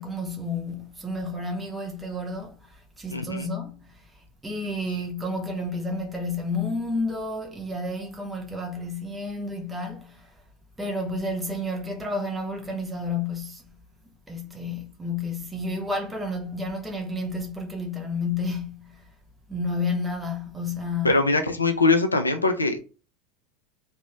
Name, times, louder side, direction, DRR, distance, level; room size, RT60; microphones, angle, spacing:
voice 1, 0.0-10.4 10.8-13.7 14.3-19.1 19.5-21.2, left 2 dB, 10° right, 0.8 m, -31 dB
voice 2, 3.1-3.5 21.0-22.8, left 3 dB, 80° left, 0.5 m, -22 dB
3.1 x 2.7 x 3.7 m
figure-of-eight pair, 80°, 0 cm